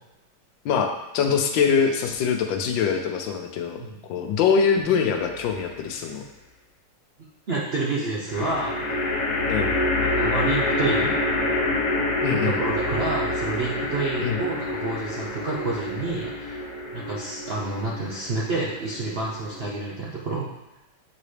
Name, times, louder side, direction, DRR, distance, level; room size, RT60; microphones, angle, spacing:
voice 1, 0.6-6.2 9.5-9.7 12.2-12.6 14.2-14.4, left 6 dB, 85° left, 4 dB, 1.4 m, -23 dB
sound 1, 5.2-5.8 8.3-19.6, left 2 dB, 55° left, 1.3 m, -27 dB
voice 2, 7.5-8.9 10.0-11.1 12.2-16.6 16.9-20.5, right 3 dB, 60° right, -5 dB, 0.6 m, -29 dB
7.5 x 3.9 x 3.3 m, 0.95 s
omnidirectional pair, 2.0 m